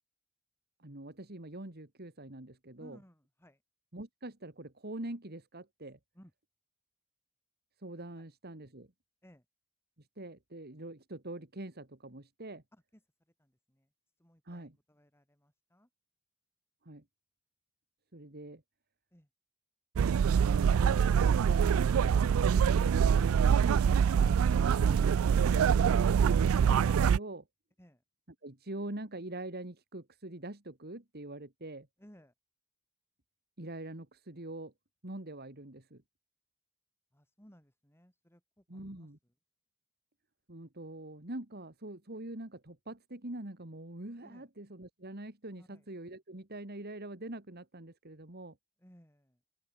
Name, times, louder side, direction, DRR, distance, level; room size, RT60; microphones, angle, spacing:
voice 1, 0.8-3.0 3.9-6.0 7.8-8.9 10.0-12.6 14.5-14.7 16.8-17.0 18.1-18.6 20.8-23.4 24.0-24.6 24.8-27.4 28.4-31.9 33.6-34.7 35.0-36.0 38.7-39.2 40.5-48.6, right 1 dB, 50° right, 2.6 m, -44 dB
voice 2, 2.8-3.6 6.1-6.3 8.2-8.3 9.2-9.4 12.7-13.0 13.4-13.9 14.2-15.9 19.1-19.3 27.8-28.0 32.0-32.3 37.1-39.1 44.2-44.5 45.5-45.9 48.8-49.4, equal, 10° left, 7.8 m, -60 dB
sound 1, 20.0-27.2, right 7 dB, 85° right, 0.4 m, -25 dB
open air
head